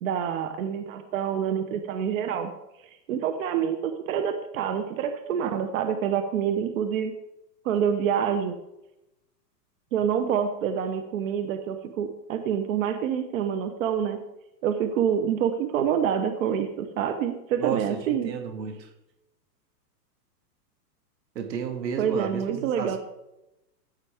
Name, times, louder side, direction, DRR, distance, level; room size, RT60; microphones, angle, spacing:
voice 1, 0.0-2.5 2.8-7.1 7.6-8.6 9.9-14.2 14.6-18.3 22.0-23.0, right 8 dB, 55° right, 1.0 m, -27 dB
voice 2, 17.6-18.9 21.4-23.0, right 7 dB, 80° right, 1.9 m, -32 dB
14.0 x 8.3 x 3.5 m
hypercardioid pair, 145°, 50 cm